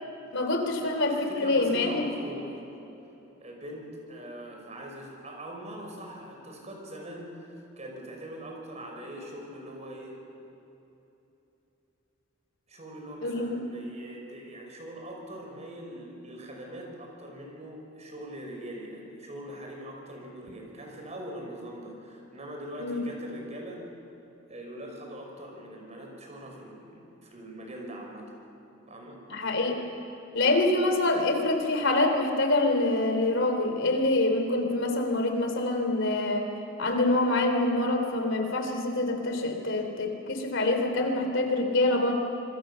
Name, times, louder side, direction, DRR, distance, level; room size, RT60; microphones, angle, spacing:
voice 1, 0.3-2.0 13.2-13.6 22.8-23.0 29.3-29.8 30.3-36.5 36.8-42.1, left 2 dB, 65° left, 4 dB, 3.5 m, -26 dB
voice 2, 1.3-2.6 3.4-10.2 12.7-23.8 24.5-28.3 28.9-29.2, right 1 dB, 35° right, 1 dB, 5.5 m, -42 dB
27.0 x 22.0 x 7.0 m, 2.9 s
head